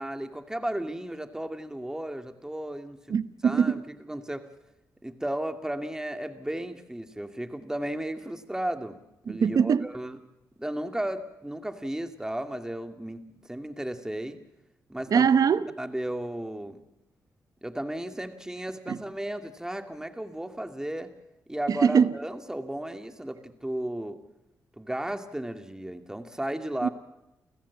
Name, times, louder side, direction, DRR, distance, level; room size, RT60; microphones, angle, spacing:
voice 1, 0.0-3.0 3.4-4.5 5.0-9.0 9.3-10.2 10.6-14.4 14.9-15.3 15.8-16.8 17.6-21.1 21.5-24.2 24.8-26.9, right 1 dB, 10° right, 2.4 m, -34 dB
voice 2, 3.1-3.8 9.4-9.9 15.1-15.6 18.9-19.0 21.7-22.1 26.8-26.9, right 6 dB, 60° right, 0.9 m, -22 dB
29.5 x 14.5 x 8.5 m
cardioid pair, 70°, 7 cm